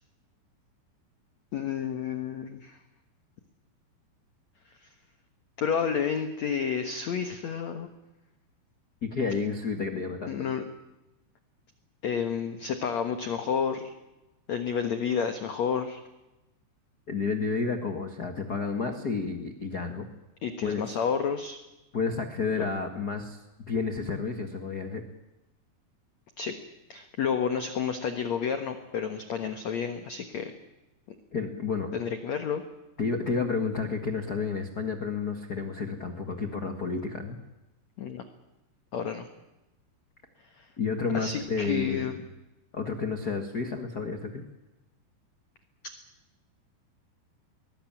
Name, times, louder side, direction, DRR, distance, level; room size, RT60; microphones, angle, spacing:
voice 1, 1.5-2.8 4.8-4.9 5.6-7.9 10.3-10.6 12.0-13.9 14.5-16.0 20.4-21.6 26.4-26.6 26.9-30.5 31.9-32.6 38.0-38.2 38.9-39.3 40.6-40.7 41.1-42.2, left 7 dB, 60° left, 8 dB, 1.9 m, -30 dB
voice 2, 9.0-10.4 17.1-20.1 20.6-21.0 21.9-23.4 23.7-25.0 31.3-31.9 33.0-37.4 40.8-42.2 42.7-44.4, left 4 dB, 75° left, 6 dB, 0.8 m, -31 dB
22.5 x 19.0 x 9.0 m, 0.99 s
omnidirectional pair, 5.0 m